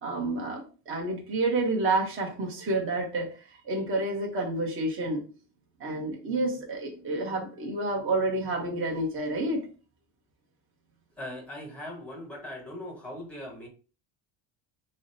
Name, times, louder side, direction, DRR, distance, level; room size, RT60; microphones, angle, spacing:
voice 1, 0.0-3.3 3.6-5.2 5.8-9.6, right 2 dB, 30° right, 0.9 m, -29 dB
voice 2, 11.2-13.7, left 1 dB, 5° left, 0.9 m, -40 dB
5.6 x 2.1 x 2.6 m
cardioid pair, 160°, 43 cm